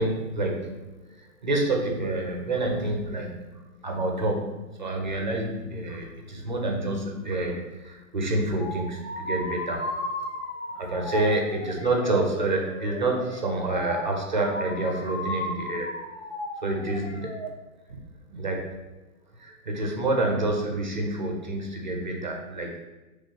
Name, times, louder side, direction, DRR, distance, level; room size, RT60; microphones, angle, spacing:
voice 1, 0.0-9.9 10.7-15.9 16.6-17.4 17.9-18.0 18.3-18.7 19.3-22.9, right 2 dB, 35° right, 1 dB, 0.4 m, -28 dB
sound 1, 8.6-17.5, left 1 dB, 50° left, 0.9 m, -35 dB
5.5 x 3.1 x 2.7 m, 1.1 s
hypercardioid pair, 170°, 44 cm